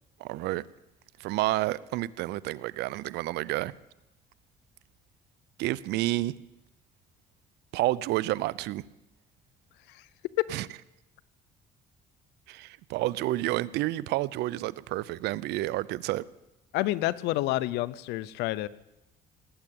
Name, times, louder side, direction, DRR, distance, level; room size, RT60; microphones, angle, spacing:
voice 1, 0.2-0.6 1.2-3.7 5.6-6.3 7.7-8.8 10.5-10.7 12.5-16.2, right 17 dB, 85° right, 21 dB, 0.5 m, -30 dB
voice 2, 16.7-18.7, left 17 dB, 90° left, 18 dB, 0.6 m, -28 dB
18.5 x 8.8 x 8.6 m, 0.92 s
cardioid pair, 110°, 17 cm